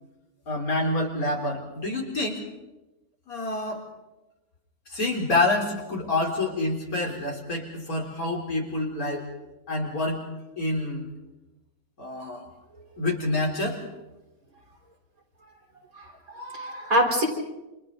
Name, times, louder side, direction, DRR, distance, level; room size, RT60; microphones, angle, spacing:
voice 1, 0.5-2.4 3.3-3.8 4.9-9.3 9.7-10.2 10.6-11.1 12.0-12.5 13.0-13.8, left 2 dB, 80° left, 0 dB, 4.4 m, -27 dB
voice 2, 15.9-17.3, equal, 75° right, -1 dB, 4.9 m, -25 dB
29.0 x 28.0 x 4.0 m, 1.0 s
omnidirectional pair, 1.5 m